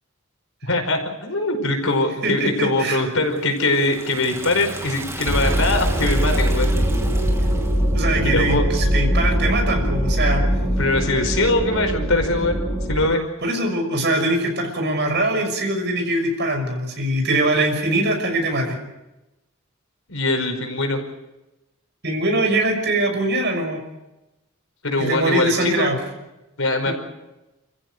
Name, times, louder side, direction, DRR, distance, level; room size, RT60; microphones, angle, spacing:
voice 1, 0.6-6.7 8.2-8.6 10.8-12.6 12.9-13.2 20.1-21.0 24.8-25.9 26.6-26.9, left 2 dB, 70° left, 4 dB, 5.2 m, -22 dB
voice 2, 2.2-3.0 7.9-10.4 13.4-18.8 22.0-23.8 25.0-26.0 26.9-27.0, right 1 dB, 55° right, 4 dB, 6.0 m, -22 dB
Liquid, 3.3-7.9, right 2 dB, 15° right, 2.9 m, -35 dB
sound 1, 5.2-13.1, equal, 5° left, 6.5 m, -21 dB
29.5 x 15.0 x 8.2 m, 0.97 s
head